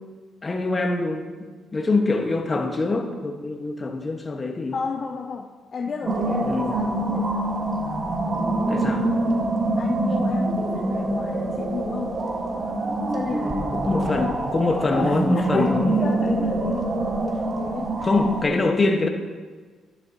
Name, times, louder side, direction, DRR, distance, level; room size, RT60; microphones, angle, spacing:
voice 1, 0.4-4.8 6.4-6.7 8.7-9.1 13.7-16.0 18.0-19.1, left 3 dB, 30° left, 4 dB, 1.0 m, -24 dB
voice 2, 4.7-7.5 9.8-12.2 13.1-14.5 14.9-16.9 17.2-18.2 18.4-18.6, left 5 dB, 45° left, 2 dB, 0.6 m, -32 dB
sound 1, 6.1-18.4, right 2 dB, 40° right, 1.2 m, -25 dB
10.5 x 10.5 x 2.7 m, 1.5 s
cardioid pair, 90°, 0 cm